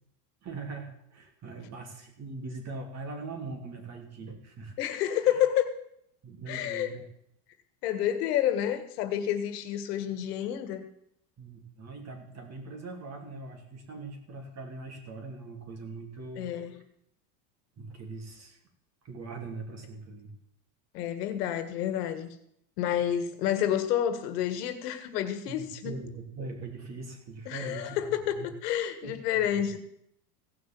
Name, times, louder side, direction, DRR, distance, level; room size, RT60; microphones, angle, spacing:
voice 1, 0.4-4.7 5.3-5.4 6.2-7.0 11.4-16.5 17.8-18.6 19.0-20.3 25.5-28.5 29.0-29.5, right 3 dB, 35° right, 3 dB, 3.2 m, -41 dB
voice 2, 4.8-5.7 6.5-6.9 7.8-10.9 16.4-16.8 20.9-22.3 22.8-26.0 27.4-29.8, left 10 dB, 80° left, 9 dB, 1.7 m, -29 dB
16.5 x 6.0 x 7.6 m, 0.75 s
supercardioid pair, 125°, 47 cm